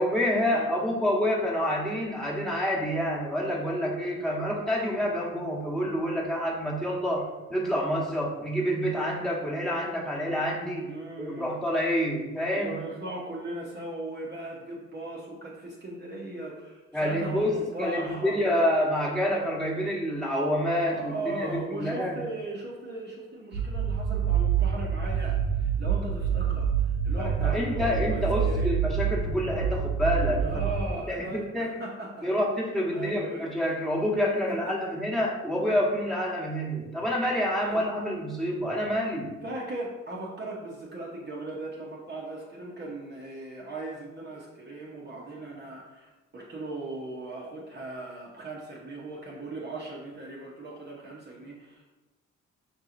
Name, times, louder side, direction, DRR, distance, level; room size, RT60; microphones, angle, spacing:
voice 1, 0.0-10.9 11.2-12.8 16.9-22.2 27.2-30.5 31.1-31.8 32.2-39.3, equal, ahead, -4 dB, 1.2 m, -28 dB
voice 2, 10.8-11.5 12.5-18.6 20.9-28.8 30.4-32.3 32.9-33.5 34.5-34.6 37.7-37.8 39.4-51.8, right 2 dB, 35° right, -4 dB, 0.9 m, -38 dB
sound 1, 23.5-30.8, right 7 dB, 70° right, 0.6 m, -27 dB
5.3 x 2.8 x 2.5 m, 1.1 s
supercardioid pair, 60°, 32 cm